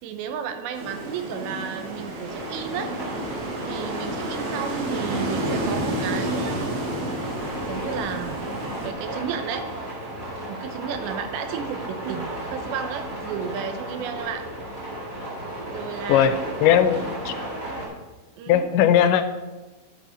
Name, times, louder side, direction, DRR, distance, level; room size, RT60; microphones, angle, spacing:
voice 1, 0.0-3.0 3.7-6.7 7.6-8.4 8.8-9.7 10.5-14.5 15.7-16.4 18.4-18.7, right 7 dB, 75° right, 7 dB, 2.9 m, -33 dB
sound 1, 0.7-8.9, right 1 dB, 50° right, 2.5 m, -30 dB
sound 2, 2.3-17.8, right 1 dB, 15° right, 4.1 m, -34 dB
voice 2, 16.1-17.3 18.5-19.3, left 9 dB, 80° left, 10 dB, 2.9 m, -19 dB
11.0 x 7.3 x 6.4 m, 1.2 s
omnidirectional pair, 5.5 m